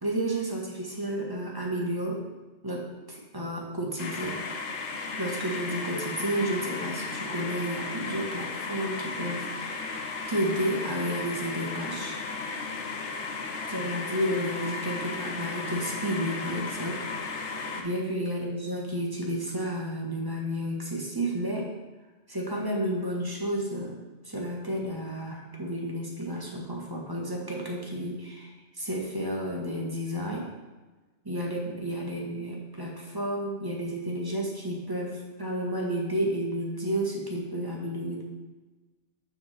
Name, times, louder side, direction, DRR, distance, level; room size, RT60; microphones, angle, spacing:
voice 1, 0.0-2.2 2.6-4.4 5.2-10.0 10.3-12.2 13.7-21.7 22.3-24.0 24.2-30.5 31.2-38.2, right 1 dB, 20° right, -1 dB, 1.2 m, -31 dB
sound 1, 4.0-17.8, left 4 dB, 75° left, 1.1 m, -35 dB
7.0 x 4.0 x 6.5 m, 1.2 s
omnidirectional pair, 1.2 m